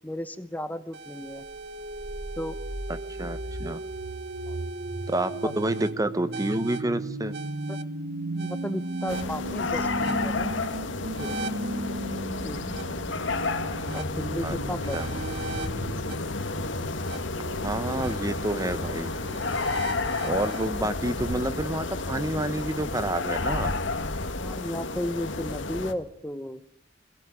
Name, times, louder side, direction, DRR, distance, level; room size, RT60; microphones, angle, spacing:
voice 1, 0.0-1.4 2.4-2.6 4.5-4.6 5.4-5.5 7.7-7.8 8.4-10.5 11.2-11.5 12.4-12.6 13.9-15.4 24.3-26.6, left 1 dB, 10° left, 12 dB, 0.9 m, -34 dB
sound 1, 0.9-20.7, right 2 dB, 65° right, 1.2 m, -35 dB
voice 2, 3.2-3.8 5.1-7.3 14.4-14.6 14.9-15.1 17.6-19.1 20.2-23.7, right 1 dB, 20° right, 13 dB, 1.0 m, -29 dB
sound 2, 9.1-25.9, left 3 dB, 90° left, 2.0 m, -31 dB
22.0 x 17.0 x 9.7 m, 0.70 s
head